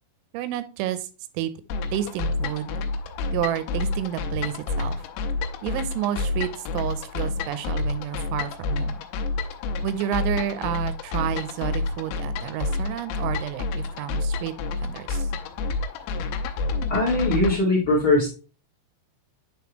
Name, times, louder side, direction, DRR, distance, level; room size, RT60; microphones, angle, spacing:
voice 1, 0.3-1.1 1.3-1.5 1.9-2.8 3.3-5.0 5.6-9.0 9.8-14.5 14.8-15.3, right 11 dB, 85° right, 13 dB, 3.1 m, -30 dB
sound 1, 1.7-17.6, left 3 dB, 80° left, 2.9 m, -29 dB
voice 2, 16.9-18.3, left 2 dB, 35° left, -2 dB, 1.6 m, -21 dB
9.4 x 4.1 x 3.0 m, 0.33 s
omnidirectional pair, 5.4 m